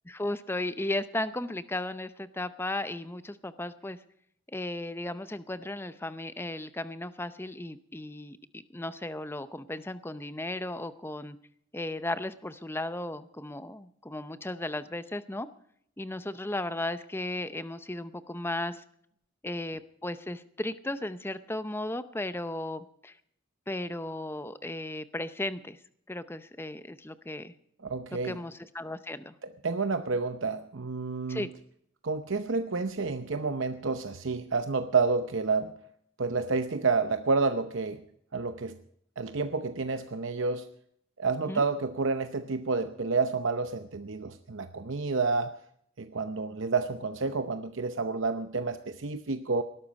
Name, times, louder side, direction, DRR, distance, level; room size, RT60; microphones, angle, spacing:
voice 1, 0.1-4.0 4.5-11.4 11.7-15.5 16.0-18.8 19.4-23.1 23.7-25.8 26.1-27.5 28.2-29.3 31.3-31.5 41.5-41.6, left 1 dB, 10° left, 13 dB, 0.7 m, -35 dB
voice 2, 27.8-28.4 29.4-31.5 32.0-35.7 36.2-38.0 38.3-38.8 39.2-40.7 41.2-45.5 46.0-49.6, right 4 dB, 65° right, 9 dB, 0.8 m, -29 dB
19.5 x 12.5 x 5.3 m, 0.69 s
head